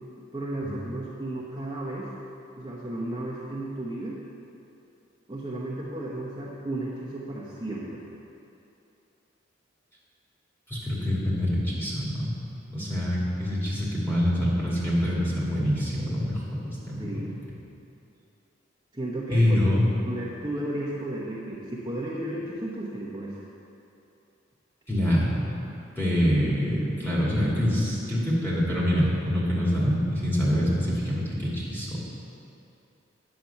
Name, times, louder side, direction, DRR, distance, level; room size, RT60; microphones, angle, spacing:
voice 1, 0.3-2.1 2.6-4.2 5.3-8.1 17.0-17.3 18.9-19.6 20.0-23.4, right 1 dB, 20° right, -6 dB, 1.0 m, -33 dB
voice 2, 10.7-12.3 12.7-17.2 19.3-19.9 24.9-25.5 26.0-32.0, equal, 10° left, -7 dB, 2.3 m, -25 dB
9.3 x 7.6 x 5.8 m, 2.8 s
head